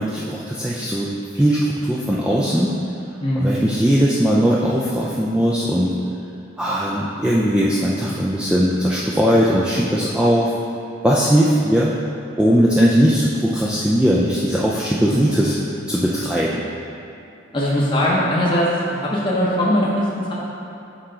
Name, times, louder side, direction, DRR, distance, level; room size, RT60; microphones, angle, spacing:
voice 1, 0.0-2.7 3.4-5.9 6.6-10.5 11.0-12.0 12.4-15.6 15.9-16.6, equal, 5° right, -6 dB, 0.3 m, -19 dB
voice 2, 3.2-3.6 15.1-15.3 17.5-20.3, equal, 25° left, -6 dB, 0.7 m, -20 dB
6.7 x 4.3 x 3.8 m, 2.8 s
head